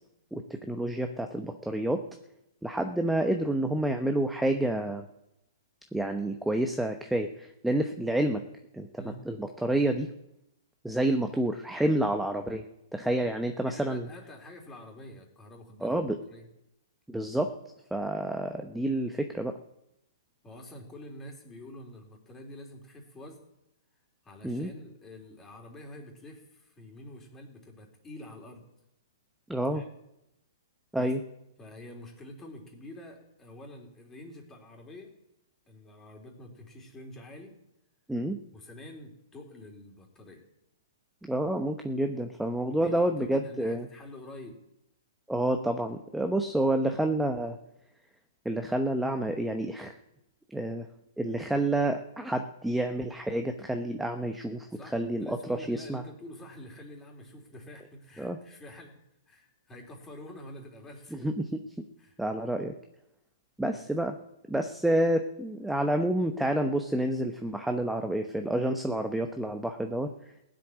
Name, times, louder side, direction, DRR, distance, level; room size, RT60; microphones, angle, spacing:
voice 1, 0.3-2.0 2.6-5.0 5.9-8.4 8.7-10.1 10.8-12.6 12.9-14.1 15.8-16.2 17.1-17.5 17.9-19.5 24.4-24.7 29.5-29.8 30.9-31.2 38.1-38.4 41.3-43.9 45.3-47.6 48.4-49.9 50.5-50.9 51.2-56.0 58.2-58.4 61.1-61.4 62.2-62.7 63.6-64.2 64.5-70.1, right 1 dB, 5° right, 5 dB, 0.9 m, -29 dB
voice 2, 13.6-16.5 20.4-23.4 24.2-28.7 29.7-29.9 31.0-31.1 31.6-35.1 35.7-37.6 38.5-40.4 42.7-44.6 54.7-59.0 59.3-61.3 62.0-62.2 63.7-63.8, left 1 dB, 15° left, 1 dB, 3.6 m, -47 dB
16.5 x 7.8 x 9.9 m, 0.86 s
hypercardioid pair, 135°, 2 cm